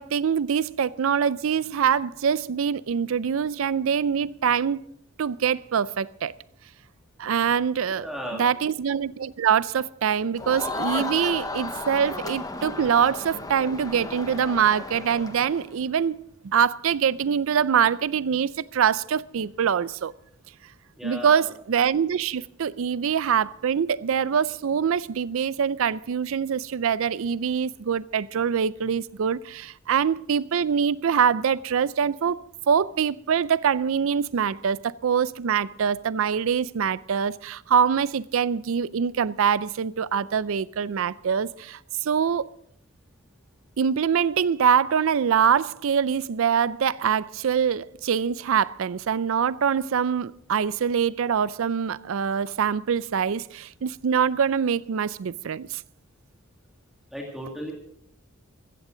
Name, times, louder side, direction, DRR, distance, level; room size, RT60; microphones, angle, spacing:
voice 1, 0.0-4.8 5.2-6.3 7.2-8.1 8.3-16.2 16.4-20.1 21.0-32.4 32.7-42.4 43.8-55.8, right 7 dB, 70° right, 0.4 m, -24 dB
voice 2, 7.9-8.5 21.0-21.5 57.1-57.7, equal, ahead, 2.3 m, -35 dB
Crowd, 10.4-15.7, left 2 dB, 20° left, 0.9 m, -34 dB
15.5 x 14.5 x 3.8 m
head